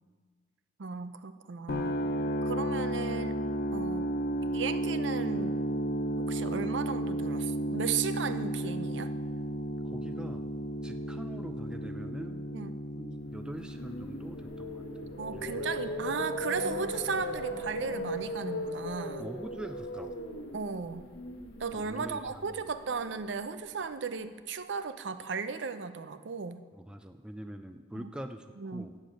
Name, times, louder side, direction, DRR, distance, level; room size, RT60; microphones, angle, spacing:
voice 1, 0.8-2.0 2.4-3.3 3.7-4.1 4.5-5.6 6.2-9.1 12.5-12.8 15.2-19.3 20.5-21.1 21.6-26.6 27.9-28.1 28.6-28.9, right 5 dB, 65° right, 11 dB, 0.6 m, -35 dB
sound 1, 1.7-17.6, right 1 dB, 50° left, 0.6 m, -34 dB
voice 2, 9.8-10.5 10.8-12.5 12.9-15.7 19.2-20.2 21.7-22.4 26.7-29.0, right 1 dB, 5° right, 7 dB, 0.4 m, -43 dB
sound 2, 13.4-23.5, left 1 dB, 85° left, 1.7 m, -38 dB
8.6 x 7.4 x 7.6 m, 1.5 s
head